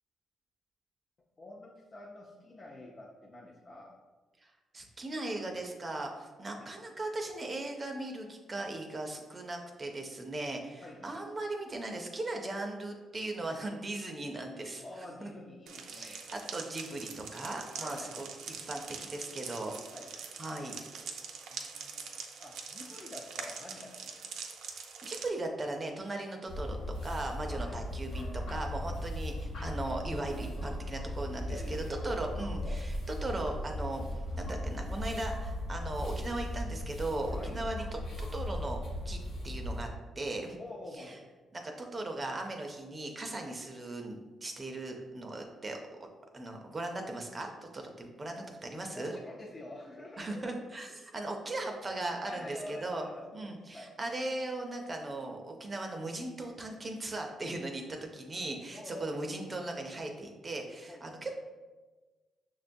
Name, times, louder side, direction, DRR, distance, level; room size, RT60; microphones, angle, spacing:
voice 1, 1.4-4.0 6.6-6.7 10.8-11.1 14.8-16.3 17.8-18.2 19.9-20.1 21.5-24.4 27.4-27.7 31.4-32.0 32.6-32.8 37.4-37.7 40.6-41.3 48.4-48.5 48.8-50.5 50.8-51.2 52.2-53.9 54.9-55.0 58.7-59.2 60.9-61.1, left 1 dB, 35° left, -2 dB, 0.4 m, -47 dB
voice 2, 4.4-14.8 15.2-15.3 15.9-18.3 18.7-19.7 20.4-20.8 25.0-33.0 33.2-38.0 38.3-38.8 39.1-39.2 39.4-39.9 40.2-40.6 41.0-41.1 41.5-45.8 46.3-49.2 50.2-53.0 53.3-61.3, right 2 dB, 30° right, 3 dB, 0.5 m, -38 dB
sound 1, 15.7-25.3, right 6 dB, 85° right, 0.4 m, -44 dB
sound 2, 26.5-39.9, left 1 dB, 75° left, 0.8 m, -37 dB
6.3 x 2.2 x 2.6 m, 1.3 s
cardioid pair, 105°, 0 cm